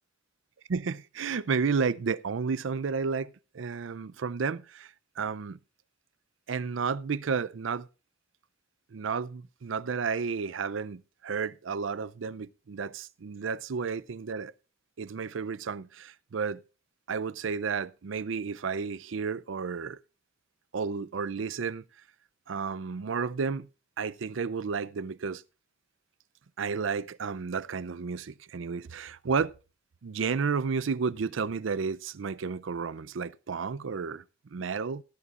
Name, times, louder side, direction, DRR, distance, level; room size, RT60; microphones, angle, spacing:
voice 1, 0.7-4.9 5.2-5.6 6.5-7.9 8.9-14.5 15.0-16.6 17.1-20.0 20.7-21.8 22.5-23.7 24.0-25.4 26.6-29.6 30.0-34.2 34.5-35.0, right 5 dB, 80° right, 0.5 m, -32 dB
17.5 x 11.0 x 2.5 m
head